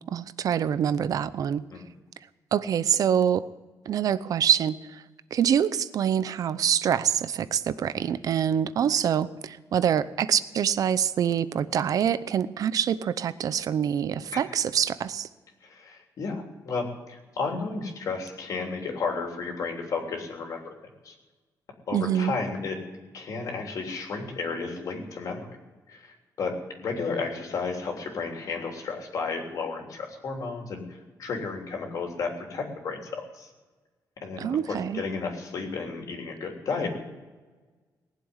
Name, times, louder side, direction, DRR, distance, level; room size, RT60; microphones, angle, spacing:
voice 1, 0.1-1.6 2.5-3.4 3.9-5.0 5.3-15.3 21.9-22.4 34.4-35.0, right 9 dB, 60° right, 16 dB, 0.7 m, -25 dB
voice 2, 15.6-20.7 21.0-21.1 21.9-22.8 23.1-25.5 25.9-30.8 31.2-33.5 34.2-36.9, left 4 dB, 60° left, 1 dB, 3.3 m, -33 dB
19.5 x 7.5 x 9.7 m, 1.3 s
wide cardioid pair, 155°, 7 cm